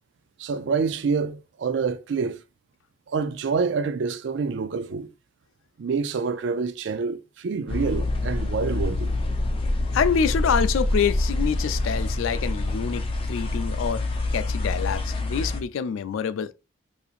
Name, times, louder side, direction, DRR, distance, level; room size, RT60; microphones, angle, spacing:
voice 1, 0.4-2.4 3.1-5.1 5.8-9.1, right 5 dB, 60° right, 0.3 m, -27 dB
sound 1, 7.7-15.6, left 2 dB, 25° left, 0.5 m, -26 dB
voice 2, 9.9-14.0 14.3-16.5, left 7 dB, 75° left, 0.3 m, -26 dB
4.0 x 2.8 x 2.4 m
head